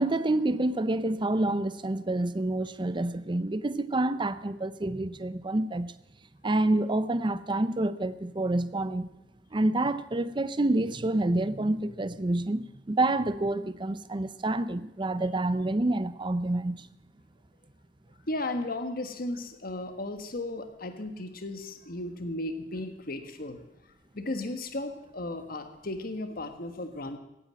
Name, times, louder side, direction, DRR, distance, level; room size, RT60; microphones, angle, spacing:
voice 1, 0.0-5.9 6.4-9.1 9.5-16.9, right 2 dB, 25° right, 0.6 m, -28 dB
voice 2, 18.3-23.6 24.1-27.2, left 2 dB, 55° left, 1.5 m, -35 dB
16.5 x 9.2 x 7.6 m
head